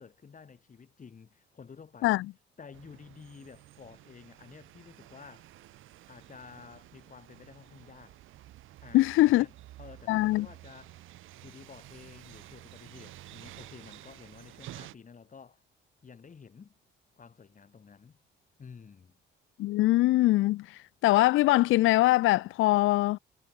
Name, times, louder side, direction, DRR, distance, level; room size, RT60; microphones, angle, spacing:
voice 1, 0.0-2.2 2.6-5.5 6.1-8.2 8.8-9.5 9.8-11.0 11.4-15.6 16.0-16.7 17.2-18.2 18.6-19.2, left 6 dB, 40° left, 5.8 m, -51 dB
sound 1, 2.7-14.9, right 15 dB, 85° right, 2.8 m, -51 dB
voice 2, 8.9-9.5 10.1-10.5 19.6-23.2, left 17 dB, 90° left, 0.7 m, -23 dB
cardioid pair, 90°, 20 cm